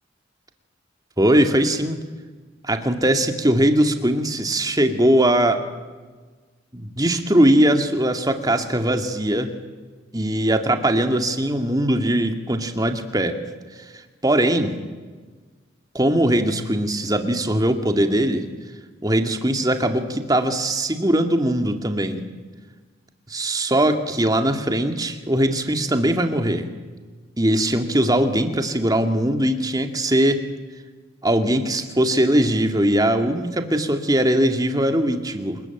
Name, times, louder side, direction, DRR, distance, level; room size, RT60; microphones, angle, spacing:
voice 1, 1.2-2.0 2.6-5.6 6.7-9.5 10.1-13.4 14.2-14.8 15.9-18.4 19.0-22.2 23.3-26.7 27.4-30.4 31.2-35.6, right 1 dB, 20° right, 6 dB, 2.2 m, -20 dB
27.5 x 21.0 x 9.1 m, 1.4 s
head